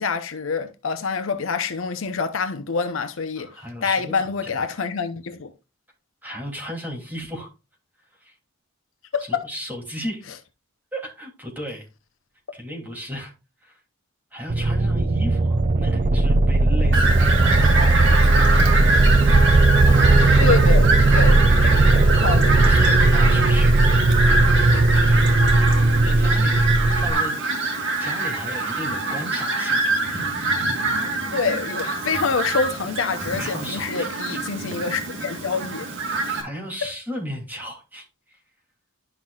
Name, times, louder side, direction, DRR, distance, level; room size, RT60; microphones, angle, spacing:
voice 1, 0.0-3.5 3.8-5.5 9.1-9.5 20.4-20.9 21.1-22.6 31.3-35.9 36.3-36.4 36.8-36.9, left 5 dB, 65° left, 0.7 m, -26 dB
voice 2, 3.4-4.5 6.2-7.5 8.2-8.3 9.2-10.2 10.9-11.9 12.5-13.3 13.6-13.8 14.3-19.4 19.8-20.5 22.6-23.8 26.0-27.3 28.0-30.3 33.4-34.4 36.3-38.4, equal, 10° right, 2.8 m, -35 dB
sound 1, 14.5-27.1, right 2 dB, 35° right, 0.4 m, -17 dB
Fowl, 16.9-36.4, right 2 dB, 60° right, 2.4 m, -24 dB
11.0 x 5.9 x 2.4 m
head